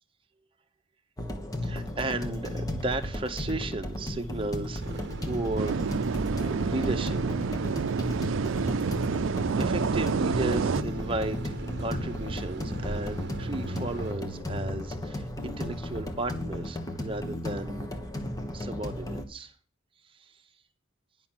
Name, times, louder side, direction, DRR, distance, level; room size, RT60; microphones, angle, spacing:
sound 1, 1.2-19.3, left 1 dB, 20° left, 1.2 m, -34 dB
voice 1, 1.6-7.2 8.2-8.5 9.6-17.9 18.5-19.5 20.1-20.2, right 2 dB, 25° right, 1.0 m, -35 dB
sound 2, 4.8-14.1, right 3 dB, 60° right, 0.8 m, -38 dB
sound 3, 5.6-10.8, right 5 dB, 90° right, 0.4 m, -29 dB
10.5 x 6.0 x 7.3 m
head